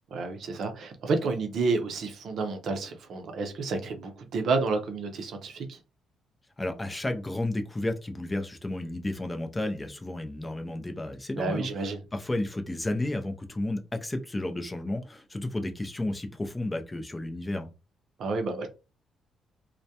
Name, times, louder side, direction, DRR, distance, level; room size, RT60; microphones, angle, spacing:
voice 1, 0.1-5.8 11.4-12.0 18.2-18.7, right 3 dB, 65° right, 0.5 m, -30 dB
voice 2, 6.6-11.7 12.1-17.7, left 1 dB, 20° left, 0.4 m, -32 dB
2.2 x 2.1 x 2.7 m
cardioid pair, 90°, 0 cm